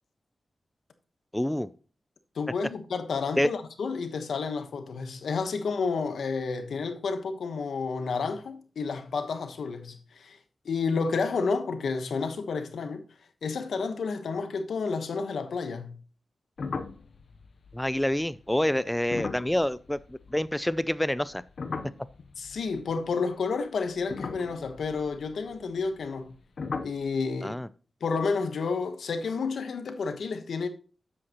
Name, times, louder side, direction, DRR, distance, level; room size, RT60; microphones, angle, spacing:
voice 1, 1.3-1.7 3.4-3.5 17.7-21.4 27.4-27.7, left 1 dB, 10° left, 0.3 m, -27 dB
voice 2, 2.3-10.4 10.6-13.0 13.4-16.0 22.4-26.4 26.8-27.6 28.0-30.7, left 4 dB, 90° left, 1.1 m, -30 dB
sound 1, 16.6-20.9 21.2-23.4 24.0-26.3 26.6-27.1, left 4 dB, 65° left, 0.7 m, -39 dB
9.8 x 7.8 x 3.0 m
wide cardioid pair, 110°, 0 cm